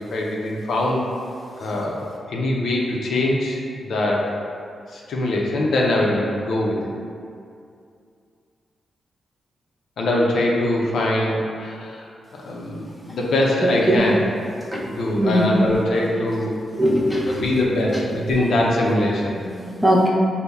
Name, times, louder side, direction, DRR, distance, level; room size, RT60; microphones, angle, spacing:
voice 1, 0.1-1.0 1.6-2.0 2.3-4.2 4.9-6.8 10.0-12.0 12.4-14.2 14.8-16.6 17.3-19.4, left 1 dB, 80° left, -2 dB, 0.5 m, -22 dB
voice 2, 16.8-17.4 19.4-20.1, equal, 5° left, -5 dB, 0.5 m, -20 dB
5.2 x 2.0 x 2.3 m, 2.4 s
cardioid pair, 100°, 0 cm